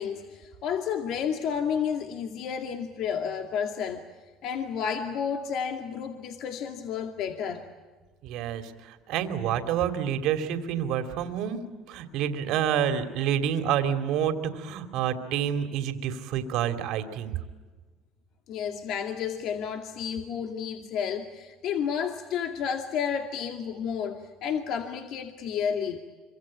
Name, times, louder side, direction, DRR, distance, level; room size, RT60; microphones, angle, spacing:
voice 1, 0.0-4.0 4.4-7.6 18.5-26.0, left 7 dB, 60° left, 5 dB, 2.2 m, -31 dB
voice 2, 8.2-11.6 11.9-17.3, right 9 dB, 65° right, 8 dB, 2.8 m, -28 dB
26.5 x 24.5 x 8.7 m, 1.3 s
supercardioid pair, 105°, 0 cm